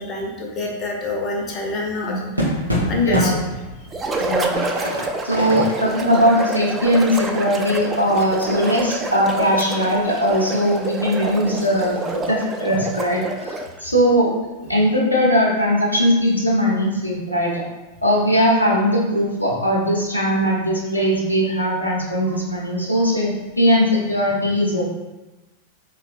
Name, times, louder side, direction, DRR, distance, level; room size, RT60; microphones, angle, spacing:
voice 1, 0.0-2.1 2.8-3.4, left 3 dB, 30° left, -1 dB, 0.6 m, -25 dB
sound 1, 1.4-8.3 8.7-8.8 9.0-10.6, equal, 90° right, 0.6 m, -28 dB
voice 2, 3.0-3.5 4.2-4.6 5.2-14.3 14.6-17.6 18.0-24.9, equal, 90° left, -4 dB, 0.6 m, -20 dB
sound 2, 3.9-13.8, right 2 dB, 15° right, 0.3 m, -28 dB
sound 3, 5.5-6.3 8.1-9.0 11.1-12.2, right 2 dB, 35° right, 0.8 m, -32 dB
4.2 x 2.1 x 2.5 m, 1.1 s
figure-of-eight pair, 90°, 0 cm